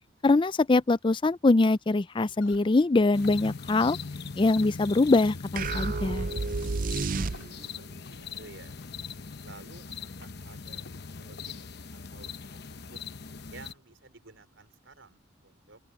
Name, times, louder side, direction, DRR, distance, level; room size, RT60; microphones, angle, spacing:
voice 1, 0.2-4.0 4.4-6.3, left 3 dB, 25° left, 0.4 m, -23 dB
sound 1, 2.3-13.8, left 3 dB, 80° left, 3.6 m, -57 dB
sound 2, 3.1-13.7, left 5 dB, 60° left, 1.0 m, -41 dB
sound 3, 5.6-7.8, right 3 dB, 45° right, 0.5 m, -30 dB
voice 2, 7.3-8.8 9.4-10.8 11.1-13.0 13.5-15.8, right 3 dB, 85° right, 4.3 m, -53 dB
open air
head